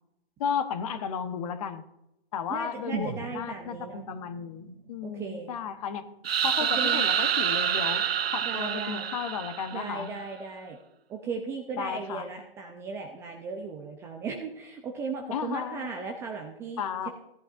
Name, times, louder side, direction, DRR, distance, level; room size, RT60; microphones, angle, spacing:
voice 1, 0.4-1.8 2.3-6.0 6.4-10.1 11.8-12.3 15.3-15.9 16.8-17.1, left 7 dB, 35° left, 10 dB, 1.0 m, -34 dB
voice 2, 2.5-4.1 5.0-5.6 6.7-7.0 8.4-9.1 9.7-10.8 11.1-17.1, right 4 dB, 10° right, 3 dB, 0.5 m, -37 dB
sound 1, 2.9-6.9 7.2-7.3, right 7 dB, 55° right, 1.1 m, -42 dB
sound 2, 6.2-10.1, right 8 dB, 75° right, 0.6 m, -27 dB
16.5 x 11.0 x 2.5 m, 0.85 s
hypercardioid pair, 135°, 31 cm